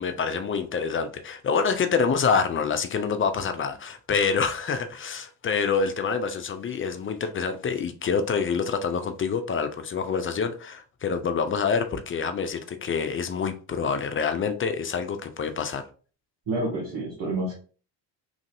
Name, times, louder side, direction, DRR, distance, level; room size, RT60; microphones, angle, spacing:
voice 1, 0.0-15.8, left 5 dB, 30° left, 0.4 m, -26 dB
voice 2, 16.5-17.6, right 2 dB, 70° right, 1.4 m, -28 dB
3.2 x 2.5 x 2.5 m
hypercardioid pair, 60°, 47 cm